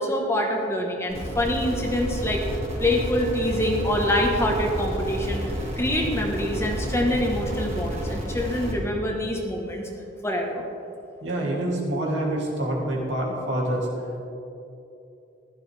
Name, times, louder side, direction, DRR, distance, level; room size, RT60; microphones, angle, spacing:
voice 1, 0.0-2.4 2.8-5.4 5.8-9.9 10.2-10.6, left 1 dB, 15° left, 0 dB, 1.3 m, -25 dB
sound 1, 1.1-8.7, equal, 35° right, 2.4 m, -30 dB
voice 2, 11.2-13.9, right 1 dB, 70° right, -3 dB, 2.7 m, -26 dB
15.0 x 12.0 x 3.5 m, 2.8 s
head